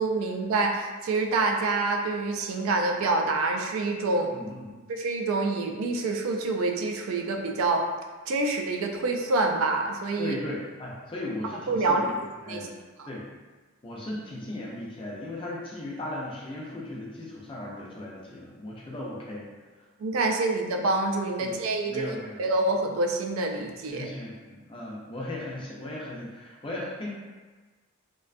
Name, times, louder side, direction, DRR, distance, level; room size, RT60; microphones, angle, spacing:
voice 1, 0.0-4.3 4.9-7.8 8.3-10.4 11.7-12.1 12.5-12.6 13.0-13.1 20.0-22.1 22.4-24.1, right 3 dB, 80° right, 3 dB, 0.3 m, -26 dB
voice 2, 4.3-4.7 10.2-12.1 12.4-12.7 13.1-13.3 13.8-19.5 19.8-19.9 21.4-21.5 21.8-22.4 23.9-27.1, left 1 dB, 25° left, -4 dB, 0.4 m, -37 dB
2.4 x 2.2 x 2.4 m, 1.3 s
head